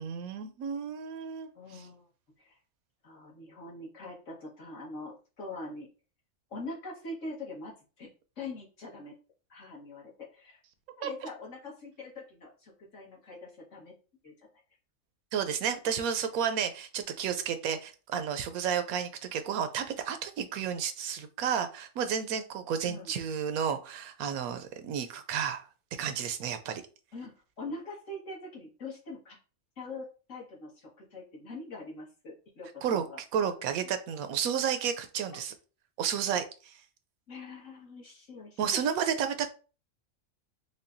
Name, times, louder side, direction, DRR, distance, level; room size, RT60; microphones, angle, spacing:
voice 1, 0.0-1.5 11.0-11.1 15.3-25.7 26.0-26.8 32.8-33.0 33.3-35.5 36.0-36.7 38.6-39.5, right 8 dB, 85° right, 9 dB, 1.0 m, -31 dB
voice 2, 1.5-2.1 2.4-2.6 3.0-5.9 6.5-8.1 8.4-9.2 9.5-10.6 11.0-14.0 14.2-14.5 22.8-23.1 27.1-29.4 29.8-33.2 33.7-33.8 37.3-38.8, left 2 dB, 60° left, -3 dB, 1.7 m, -43 dB
5.3 x 2.2 x 2.5 m, 0.35 s
omnidirectional pair, 1.5 m